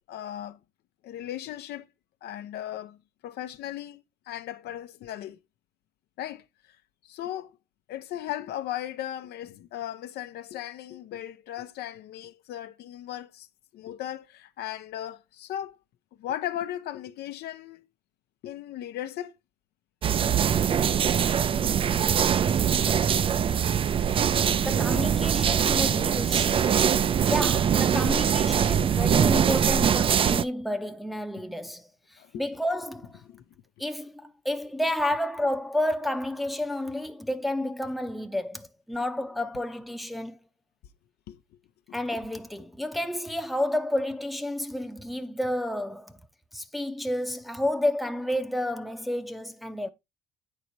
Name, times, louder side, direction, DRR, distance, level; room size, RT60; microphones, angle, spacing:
voice 1, 0.1-0.6 1.0-1.9 2.2-5.4 6.2-6.8 7.0-7.6 7.9-13.5 13.7-15.8 16.2-17.9 18.4-19.3 21.2-21.5 31.3-31.4 32.2-32.5 33.2-33.4 41.3-41.4 41.9-42.0, left 12 dB, 75° left, 0.8 m, -37 dB
sound 1, 20.0-30.4, right 8 dB, 30° right, 0.4 m, -23 dB
voice 2, 24.6-26.7 27.3-31.9 32.3-33.2 33.8-40.4 41.9-46.2 46.5-49.9, left 1 dB, ahead, 0.7 m, -30 dB
9.3 x 4.1 x 4.5 m
cardioid pair, 110°, 17 cm